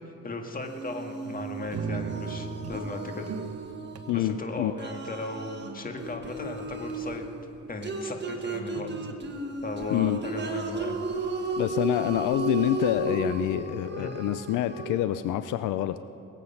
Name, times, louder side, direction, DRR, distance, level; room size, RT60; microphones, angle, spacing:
voice 1, 0.2-3.3 4.1-7.3 7.7-8.9 9.6-11.0 14.0-14.1, left 2 dB, 30° left, 4 dB, 1.9 m, -36 dB
sound 1, 0.6-4.3 4.8-15.0, right 3 dB, 35° right, 1.5 m, -34 dB
sound 2, 1.2-2.8 3.2-4.1 5.2-6.9 8.1-9.2, right 6 dB, 55° right, 1.0 m, -39 dB
voice 2, 4.1-4.7 9.9-10.2 11.6-16.0, left 12 dB, 80° left, 12 dB, 0.5 m, -27 dB
22.0 x 8.1 x 5.8 m, 3.0 s
cardioid pair, 90°, 30 cm